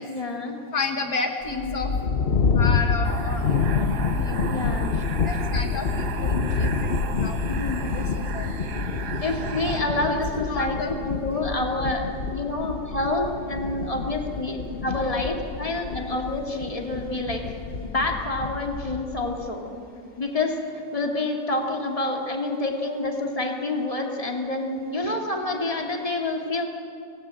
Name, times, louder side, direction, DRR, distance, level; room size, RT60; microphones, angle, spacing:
voice 1, 0.0-0.6 1.5-1.9 4.4-5.1 7.5-7.8 9.2-17.6 17.8-19.7 20.2-26.7, left 2 dB, 20° left, 1 dB, 2.3 m, -28 dB
voice 2, 0.7-1.9 2.6-3.5 4.1-4.5 5.3-7.4 7.9-8.0 8.3-8.4 10.4-11.2, left 3 dB, 65° left, 4 dB, 1.7 m, -31 dB
sound 1, 1.4-19.5, left 5 dB, 45° left, 0.9 m, -28 dB
sound 2, 3.0-9.8, right 6 dB, 75° right, 1.6 m, -34 dB
25.0 x 18.0 x 8.9 m, 2.6 s
omnidirectional pair, 1.7 m